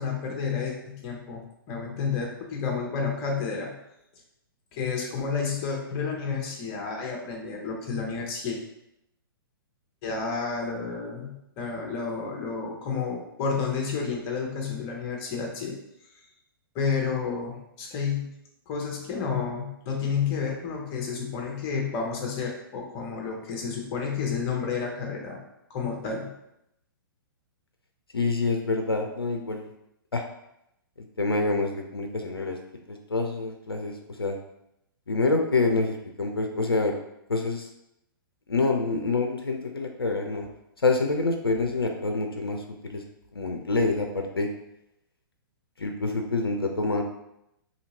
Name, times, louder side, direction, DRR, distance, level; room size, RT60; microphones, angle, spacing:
voice 1, 0.0-1.4 1.7-3.7 4.7-8.6 10.0-15.8 16.7-18.3 18.7-25.4 25.7-26.3, left 5 dB, 30° left, 0 dB, 0.7 m, -30 dB
voice 2, 28.1-29.7 30.1-30.2 31.2-32.6 32.9-34.4 35.1-36.9 37.3-37.7 38.5-40.5 40.8-43.0 43.3-44.5 45.8-47.0, left 3 dB, 90° left, 3 dB, 0.4 m, -26 dB
2.8 x 2.8 x 2.8 m, 0.82 s
figure-of-eight pair, 120°, 12 cm